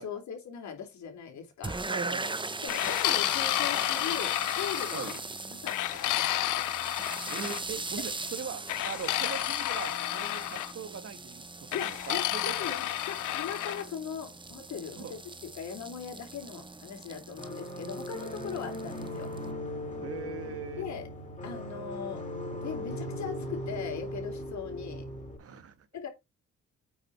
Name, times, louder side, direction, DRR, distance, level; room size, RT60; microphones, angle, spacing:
voice 1, 0.0-1.8 2.6-5.1 5.5-6.3 11.7-19.3 20.7-21.1 21.4-22.2 22.5-25.1 25.9-26.1, left 7 dB, 65° left, 3.9 m, -39 dB
sound 1, 1.6-19.5, right 3 dB, 15° right, 1.2 m, -41 dB
voice 2, 1.9-2.9 4.9-5.2 7.3-12.8 15.0-15.1 20.0-20.9 25.4-25.8, right 7 dB, 50° right, 1.7 m, -41 dB
sound 2, 2.7-5.2 5.7-7.6 8.7-10.7 11.7-13.8, left 14 dB, 90° left, 0.9 m, -30 dB
sound 3, 17.4-25.4, left 1 dB, 25° left, 4.4 m, -38 dB
8.7 x 6.4 x 4.4 m
cardioid pair, 90°, 30 cm